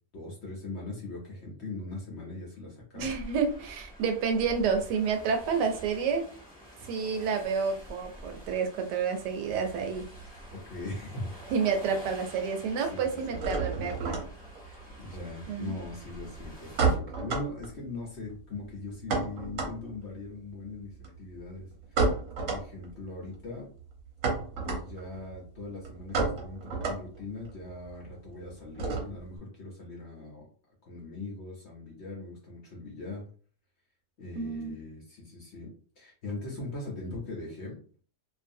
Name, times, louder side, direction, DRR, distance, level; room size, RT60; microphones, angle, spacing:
voice 1, 0.1-3.1 10.5-11.5 12.8-13.5 14.6-22.2 22.5-23.7 24.6-30.5 30.8-33.3 34.2-35.7 36.0-37.8, left 2 dB, 55° left, -3 dB, 0.8 m, -40 dB
voice 2, 2.9-6.2 6.9-10.1 11.5-14.2 15.5-15.7 34.3-34.7, right 5 dB, 80° right, 5 dB, 1.2 m, -29 dB
sound 1, 3.0-17.0, equal, 10° left, 0.4 m, -48 dB
sound 2, 9.5-11.1 11.4-12.1 12.3-29.4, right 4 dB, 55° right, 1.0 m, -33 dB
2.5 x 2.5 x 2.6 m, 0.43 s
omnidirectional pair, 1.8 m